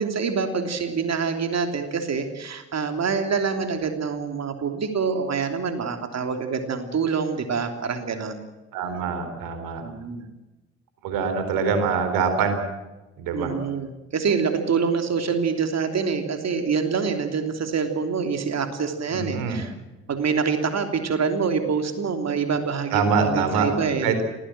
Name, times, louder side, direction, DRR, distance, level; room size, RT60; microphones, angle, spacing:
voice 1, 0.0-8.4 9.8-10.3 13.3-19.7 20.1-24.2, right 5 dB, 50° right, 6 dB, 3.2 m, -26 dB
voice 2, 8.7-9.8 11.0-12.6 13.2-13.5 19.1-19.6 22.9-23.7 24.0-24.2, right 5 dB, 70° right, 8 dB, 3.9 m, -24 dB
26.5 x 18.0 x 7.6 m, 1.1 s
figure-of-eight pair, 40°, 35 cm